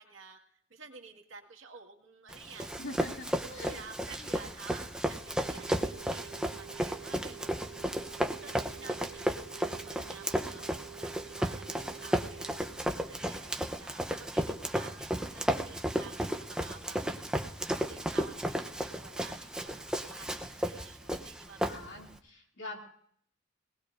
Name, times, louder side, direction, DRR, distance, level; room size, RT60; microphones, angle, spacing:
voice 1, 0.0-2.7 3.3-7.9 8.4-12.6 13.1-17.0 17.7-21.9, right 4 dB, 85° right, 3 dB, 2.0 m, -51 dB
Run, 2.3-22.2, equal, 5° right, 0.7 m, -34 dB
voice 2, 2.8-3.8 4.1-4.3 5.7-6.1 21.7-22.8, left 2 dB, 70° left, 0 dB, 2.7 m, -45 dB
sound 1, 5.3-12.7, right 12 dB, 35° right, 1.3 m, -50 dB
22.5 x 19.0 x 2.6 m, 0.64 s
head